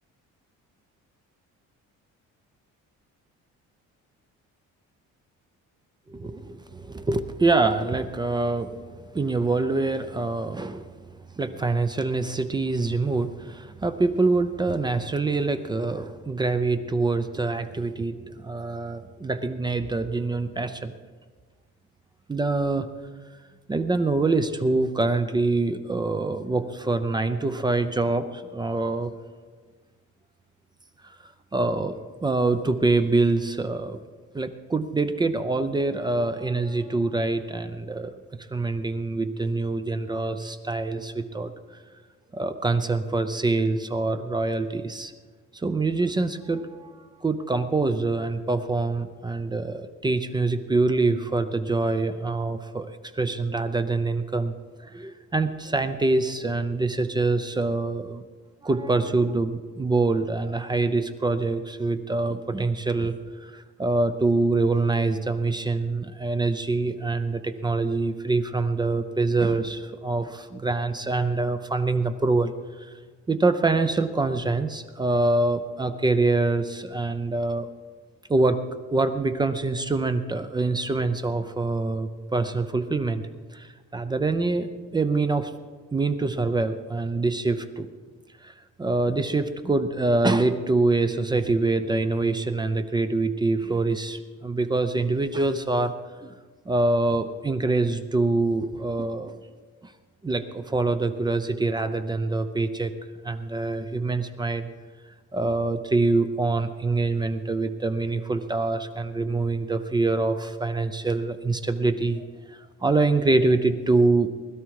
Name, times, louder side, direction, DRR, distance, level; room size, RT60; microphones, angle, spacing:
voice 1, 6.1-8.8 9.1-10.9 11.4-20.9 22.3-22.9 23.7-29.1 31.0-34.0 34.3-38.2 38.5-41.5 42.3-45.1 45.5-54.5 54.8-58.2 58.6-72.5 72.8-72.9 73.3-77.7 78.3-78.6 78.9-83.2 83.5-85.5 85.9-87.9 88.4-95.9 96.2-96.3 96.7-99.4 99.8-99.9 100.2-102.9 103.2-104.7 105.3-114.3, right 3 dB, 15° right, 9 dB, 0.5 m, -25 dB
20.5 x 12.5 x 4.7 m, 1.5 s
cardioid pair, 170°, 30 cm